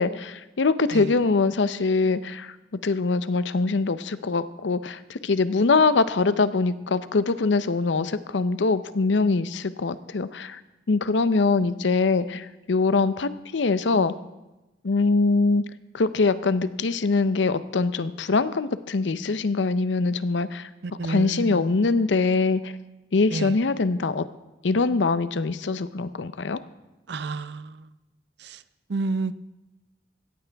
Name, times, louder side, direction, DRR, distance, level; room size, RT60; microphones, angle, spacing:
voice 1, 0.0-2.5 2.8-10.6 10.9-14.1 14.8-15.6 15.9-20.7 21.0-22.7 23.1-24.3 24.6-26.6, left 3 dB, 75° left, 14 dB, 0.6 m, -23 dB
voice 2, 20.8-21.6 23.3-23.5 27.1-27.8 28.4-28.6 28.9-29.4, right 3 dB, 60° right, 14 dB, 0.5 m, -30 dB
17.0 x 14.5 x 3.5 m, 1.0 s
head